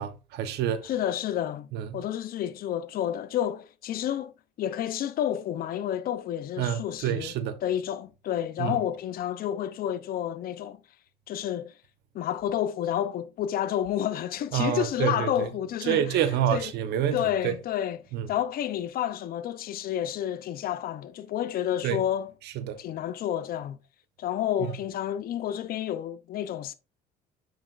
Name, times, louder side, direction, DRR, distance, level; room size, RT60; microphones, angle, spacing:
voice 1, 0.0-0.8 1.7-2.0 6.6-7.6 8.6-8.8 14.5-15.5 15.9-17.5 18.1-18.3 21.8-22.0 22.6-22.8, right 10 dB, 80° right, 0.9 m, -27 dB
voice 2, 0.8-4.3 4.6-7.3 7.6-10.8 11.3-11.7 12.1-16.8 17.1-22.3 22.8-23.8 24.2-26.7, left 10 dB, 60° left, 0.6 m, -30 dB
7.1 x 6.1 x 2.5 m
cardioid pair, 110°, 17 cm